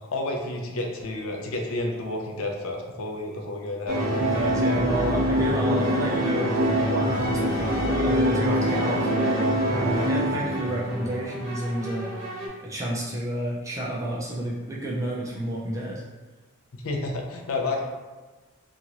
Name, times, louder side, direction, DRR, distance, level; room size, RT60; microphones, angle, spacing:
voice 1, 0.0-4.0 16.8-17.8, left 2 dB, 75° left, 1 dB, 0.5 m, -30 dB
sound 1, 3.9-12.5, equal, 65° right, 0.9 m, -25 dB
voice 2, 4.1-12.1 12.6-16.0, right 1 dB, 15° right, -4 dB, 0.3 m, -30 dB
2.9 x 2.5 x 2.8 m, 1.2 s
head